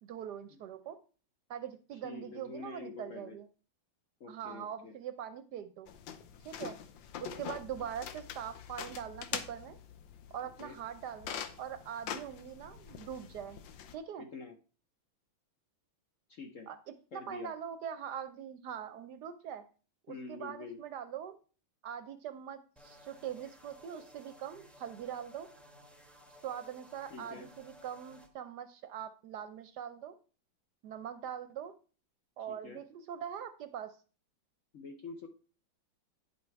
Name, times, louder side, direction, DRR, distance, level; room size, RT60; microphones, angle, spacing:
voice 1, 0.0-1.0 1.5-3.5 4.3-5.9 6.4-6.8 7.2-9.8 10.3-13.6 13.9-14.3 16.7-16.8 17.1-19.6 20.1-21.4 21.8-25.5 26.4-30.2 30.8-31.7 32.4-34.0, right 9 dB, 70° right, 10 dB, 1.1 m, -42 dB
voice 2, 1.9-3.4 4.2-5.0 10.6-10.8 14.2-14.5 16.3-16.7 17.1-17.5 20.1-20.8 27.1-27.5 32.5-32.8 34.7-35.3, left 4 dB, 60° left, 5 dB, 0.8 m, -46 dB
sound 1, 5.9-13.9, left 9 dB, 75° left, 1.4 m, -44 dB
sound 2, 22.8-28.3, equal, ahead, 0.6 m, -57 dB
10.0 x 5.5 x 4.4 m, 0.38 s
omnidirectional pair, 2.1 m